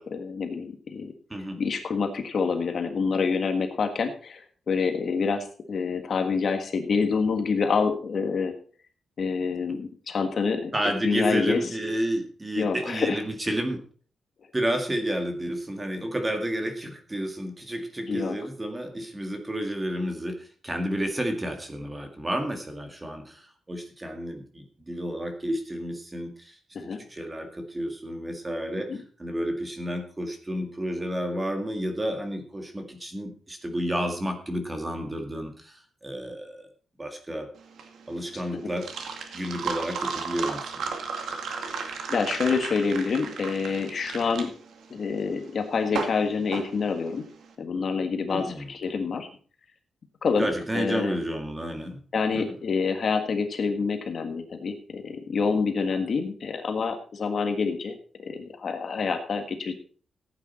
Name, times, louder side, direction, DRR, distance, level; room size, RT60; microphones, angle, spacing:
voice 1, 0.0-1.1 1.6-8.5 9.2-10.7 11.0-11.6 12.6-13.2 18.1-18.4 26.7-27.0 28.9-29.0 38.5-38.7 42.1-44.5 44.9-47.2 47.6-49.3 50.2-51.2 52.1-58.0 58.2-59.7, left 5 dB, 45° left, 7 dB, 1.5 m, -27 dB
voice 2, 10.7-13.8 14.5-36.7 37.0-37.5 38.1-38.9 39.3-40.7 48.3-48.7 50.4-52.0 52.3-52.5 56.0-56.1, right 1 dB, 15° right, 5 dB, 1.9 m, -31 dB
sound 1, 37.6-47.4, right 5 dB, 85° right, 2.2 m, -34 dB
15.0 x 8.9 x 4.3 m, 0.41 s
wide cardioid pair, 175°, 0 cm